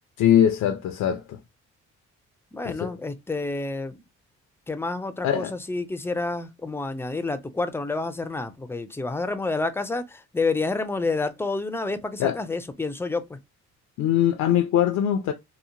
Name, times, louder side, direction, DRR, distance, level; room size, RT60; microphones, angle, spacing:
voice 1, 0.2-1.4 2.7-2.9 5.2-5.5 12.2-12.4 14.0-15.3, left 10 dB, 70° left, 0.5 m, -22 dB
voice 2, 2.5-4.0 4.7-13.4, left 3 dB, 10° left, 0.4 m, -29 dB
2.9 x 2.0 x 2.5 m
cardioid pair, 90°, 30 cm